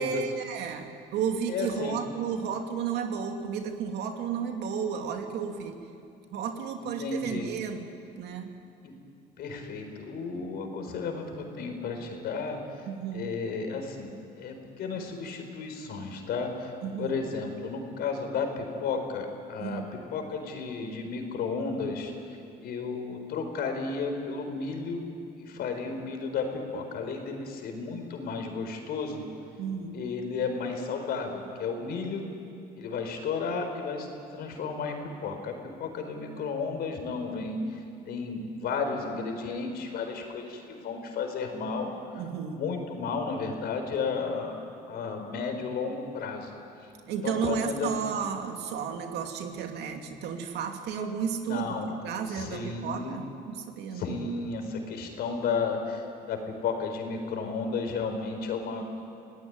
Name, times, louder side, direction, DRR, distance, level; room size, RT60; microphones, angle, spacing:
voice 1, 0.0-5.8 6.3-7.9 8.2-8.5 12.8-13.3 16.8-17.2 19.6-19.9 29.6-30.0 42.1-42.6 47.1-51.8 52.0-54.2, right 7 dB, 80° right, 4 dB, 2.6 m, -33 dB
voice 2, 1.5-2.0 6.8-7.5 8.8-8.9 9.4-12.8 13.1-16.7 17.0-22.1 22.6-25.0 25.4-29.2 29.9-32.3 32.7-34.1 34.3-41.9 42.5-44.5 44.9-46.5 47.2-47.9 51.4-51.9 52.3-53.2 53.9-58.9, left 4 dB, 70° left, 5 dB, 4.5 m, -33 dB
28.0 x 18.0 x 9.7 m, 2.5 s
cardioid pair, 110°, 17 cm